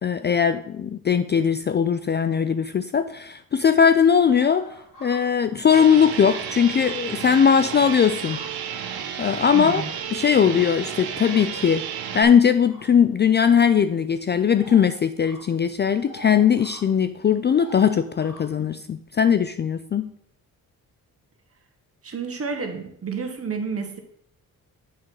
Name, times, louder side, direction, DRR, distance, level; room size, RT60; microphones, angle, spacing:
voice 1, 0.0-4.7 5.0-8.4 9.2-9.8 10.1-11.8 12.1-20.1, left 7 dB, 30° left, 11 dB, 0.3 m, -19 dB
sound 1, 4.3-5.9 6.1-7.0 7.4-8.7 9.1-10.0 10.8-11.4 12.6-12.9 13.4-13.6 14.6-14.9 15.2-15.4 15.8-16.8 17.6-18.4, equal, 60° left, 2.7 m, -45 dB
sound 2, 5.7-12.2, right 8 dB, 85° right, 1.0 m, -32 dB
voice 2, 9.5-9.9 22.0-24.0, right 5 dB, 40° right, 5 dB, 1.4 m, -30 dB
7.6 x 5.3 x 4.6 m, 0.68 s
cardioid pair, 85°, 36 cm